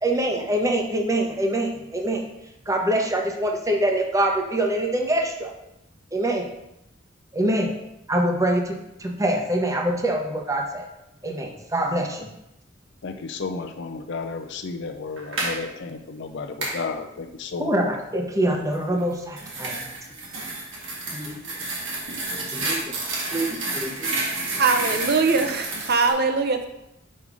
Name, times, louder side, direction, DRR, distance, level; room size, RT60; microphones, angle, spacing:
voice 1, 0.0-2.3 2.7-5.5 6.1-6.5 7.3-7.7 8.1-10.9 11.2-12.3 17.6-19.7 21.1-21.4 22.5-22.8 23.3-24.1, right 1 dB, 15° right, 2 dB, 0.9 m, -24 dB
voice 2, 13.0-17.8, left 4 dB, 60° left, 6 dB, 0.5 m, -33 dB
sound 1, 15.2-15.6 16.6-16.8 19.0-26.1, right 2 dB, 75° right, 1.9 m, -30 dB
voice 3, 24.6-26.7, right 4 dB, 55° right, 6 dB, 0.8 m, -21 dB
5.4 x 5.4 x 4.7 m, 0.86 s
head